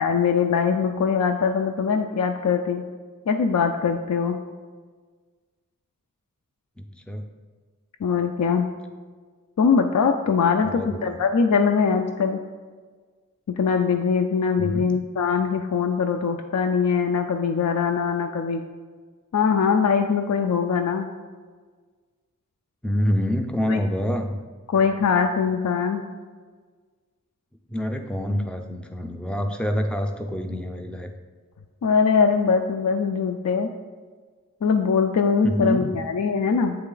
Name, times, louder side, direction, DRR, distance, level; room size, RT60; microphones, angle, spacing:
voice 1, 0.0-2.8 3.3-4.4 8.0-8.7 9.6-12.4 13.6-18.6 19.3-21.1 23.7-23.8 24.7-26.1 31.8-33.7 34.6-36.8, left 6 dB, 85° left, 5 dB, 0.3 m, -22 dB
voice 2, 6.8-7.2 10.6-11.2 14.6-14.9 22.8-24.3 27.7-31.1 35.4-36.0, equal, 5° left, 4 dB, 0.3 m, -26 dB
7.8 x 3.2 x 3.8 m, 1.5 s
head